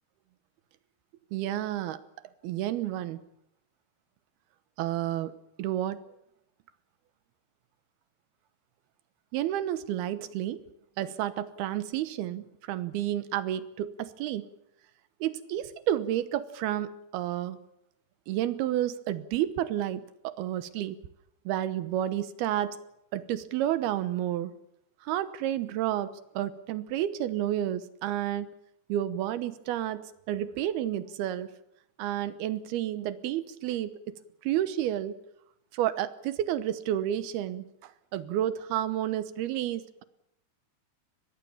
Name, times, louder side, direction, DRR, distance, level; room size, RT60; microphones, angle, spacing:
voice 1, 1.3-2.0 2.4-3.2 4.8-5.3 5.6-6.0 9.3-10.6 11.0-14.5 15.2-17.6 18.3-21.0 21.5-22.8 23.1-24.5 25.0-28.5 28.9-31.5 32.0-34.0 34.4-35.2 35.7-40.0, right 12 dB, 75° right, 13 dB, 2.9 m, -31 dB
24.0 x 20.5 x 7.2 m, 0.81 s
omnidirectional pair, 4.6 m